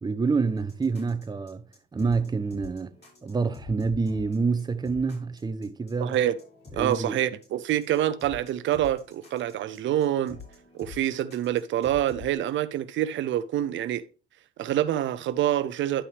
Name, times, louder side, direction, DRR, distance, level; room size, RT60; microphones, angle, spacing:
voice 1, 0.0-1.6 1.9-2.9 3.2-6.2 6.8-7.2, right 4 dB, 20° right, 0.7 m, -27 dB
sound 1, 0.6-12.4, left 4 dB, 55° left, 5.6 m, -47 dB
voice 2, 6.0-6.4 6.7-10.4 10.7-14.0 14.6-16.0, right 12 dB, 75° right, 0.5 m, -26 dB
11.0 x 5.6 x 3.4 m
cardioid pair, 90°, 20 cm